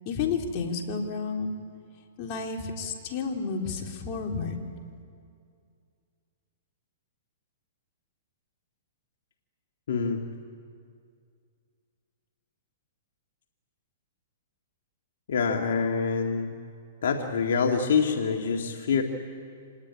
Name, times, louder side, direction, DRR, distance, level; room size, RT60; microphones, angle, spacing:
voice 1, 0.1-1.5 2.2-4.6, left 5 dB, 40° left, 1 dB, 3.5 m, -31 dB
voice 2, 9.9-10.3 15.3-16.6 17.0-19.0, left 5 dB, 75° left, 2 dB, 2.1 m, -26 dB
27.0 x 19.5 x 9.9 m, 2.3 s
hypercardioid pair, 140°, 0 cm